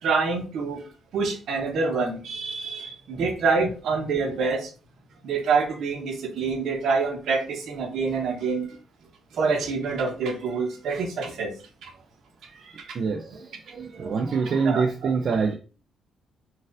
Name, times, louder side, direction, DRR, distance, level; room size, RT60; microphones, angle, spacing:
voice 1, 0.0-0.8 1.1-4.7 5.2-8.7 9.3-11.5 11.8-11.9 14.6-14.8, right 4 dB, 75° right, 0.9 m, -26 dB
voice 2, 12.4-15.5, right 5 dB, 55° right, 0.4 m, -27 dB
4.1 x 2.4 x 2.5 m
cardioid pair, 90°, 0 cm